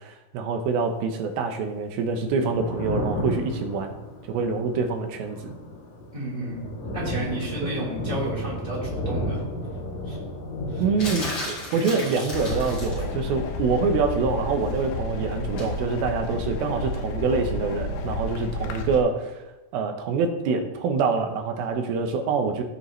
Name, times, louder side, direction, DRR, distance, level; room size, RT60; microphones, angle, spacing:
voice 1, 0.0-3.9 4.2-5.5 7.6-7.7 10.8-22.6, right 4 dB, 85° right, 5 dB, 2.7 m, -26 dB
Thunder, 2.3-16.7 17.0-18.2, left 1 dB, 65° left, 3.2 m, -34 dB
voice 2, 6.1-6.6 6.9-9.4 10.0-10.2 10.7-10.8, right 1 dB, 10° right, -6 dB, 2.5 m, -32 dB
sound 1, 11.0-13.1 15.6-15.8, left 2 dB, 40° left, 4.6 m, -34 dB
sound 2, 12.3-19.0, left 2 dB, 85° left, 2.7 m, -31 dB
15.5 x 5.5 x 3.1 m, 1.0 s
omnidirectional pair, 4.2 m